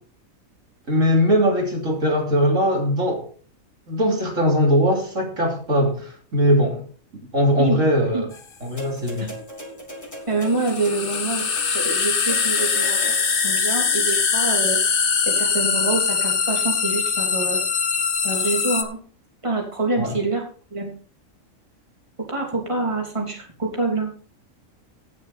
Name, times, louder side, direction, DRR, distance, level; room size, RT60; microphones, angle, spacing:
voice 1, 0.9-3.3 3.9-6.8 7.3-8.3 8.6-9.3 20.0-20.2, equal, 65° right, 0 dB, 3.6 m, -20 dB
sound 1, 8.3-8.4 10.5-18.8, left 5 dB, 45° left, 1.1 m, -22 dB
sound 2, 8.8-13.5 14.5-14.6, equal, 10° left, 3.0 m, -39 dB
voice 2, 10.3-14.8 15.2-17.6 18.2-19.0 19.4-20.4 20.7-20.9 22.3-24.1, right 3 dB, 20° right, 0 dB, 3.0 m, -26 dB
17.5 x 6.7 x 4.2 m, 0.39 s
omnidirectional pair, 1.4 m